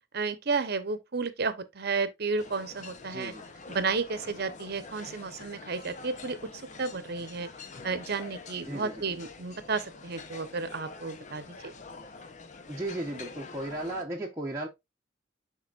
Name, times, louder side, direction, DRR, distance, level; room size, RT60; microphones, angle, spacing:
voice 1, 0.1-3.3 3.7-6.4 6.8-7.5 7.8-11.7, right 4 dB, 55° right, 0.9 m, -32 dB
sound 1, 2.4-14.0, left 4 dB, 40° left, 0.8 m, -46 dB
voice 2, 3.1-3.5 8.7-9.0 12.7-14.7, right 1 dB, 15° right, 0.9 m, -35 dB
10.5 x 3.7 x 2.5 m
head